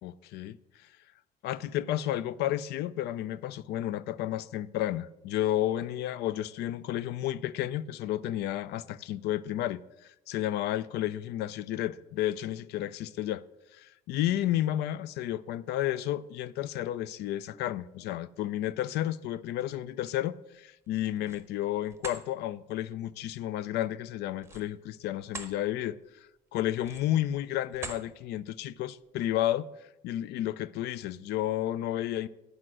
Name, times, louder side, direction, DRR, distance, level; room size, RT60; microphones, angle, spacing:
voice 1, 0.0-0.6 1.4-13.4 13.7-26.0 26.5-29.7 30.0-32.3, left 13 dB, 80° left, 0.4 m, -32 dB
sound 1, 20.8-21.5 21.9-22.2 24.4-25.6 26.0-26.2 26.8-27.2 27.7-28.1, right 3 dB, 15° right, 0.9 m, -43 dB
10.0 x 4.8 x 6.1 m
cardioid pair, 110°, 17 cm